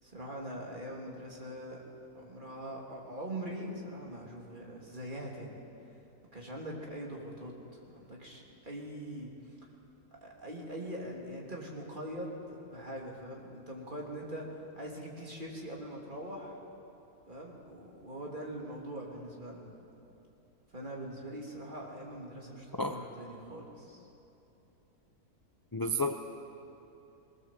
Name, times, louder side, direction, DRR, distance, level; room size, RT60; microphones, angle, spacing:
voice 1, 0.0-1.8 2.1-5.6 6.3-9.3 10.2-16.6 17.3-19.7 20.7-24.1, right 1 dB, 30° right, -2 dB, 3.2 m, -42 dB
voice 2, 25.7-26.2, left 1 dB, 25° left, 5 dB, 0.4 m, -30 dB
21.0 x 19.0 x 7.5 m, 2.9 s
omnidirectional pair, 1.7 m